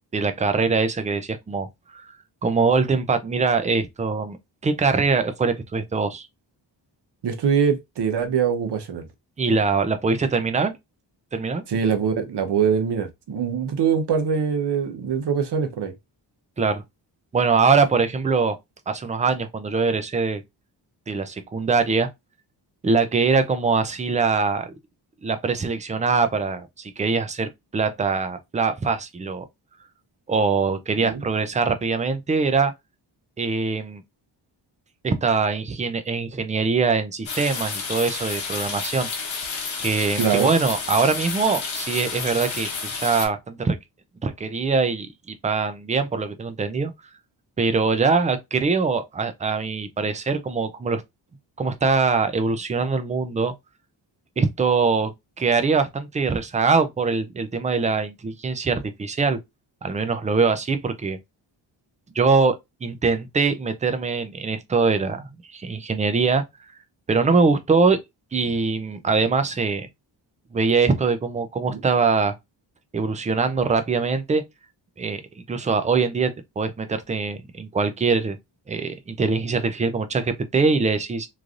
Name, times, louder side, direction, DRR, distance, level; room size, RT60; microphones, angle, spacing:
voice 1, 0.1-2.1 2.4-4.4 4.6-6.3 9.4-10.7 11.3-11.6 16.6-16.8 17.3-18.6 18.9-20.4 21.1-22.1 22.8-24.7 25.2-29.4 30.3-32.7 33.4-34.0 35.0-39.1 39.8-42.7 43.0-43.8 44.2-46.9 47.6-51.0 51.6-53.5 54.4-55.1 55.4-59.4 59.8-61.2 62.2-66.4 67.1-68.0 68.3-69.9 70.5-72.3 72.9-74.4 75.0-75.2 75.5-78.4 78.7-81.3, right 4 dB, 20° right, 0.3 m, -22 dB
voice 2, 7.2-9.1 11.7-15.9 31.0-31.2 40.2-40.5 71.7-71.8, right 7 dB, 60° right, 0.8 m, -23 dB
Rain with crickets, 37.3-43.3, left 5 dB, 90° left, 1.1 m, -30 dB
3.1 x 2.5 x 2.4 m
wide cardioid pair, 115°, 46 cm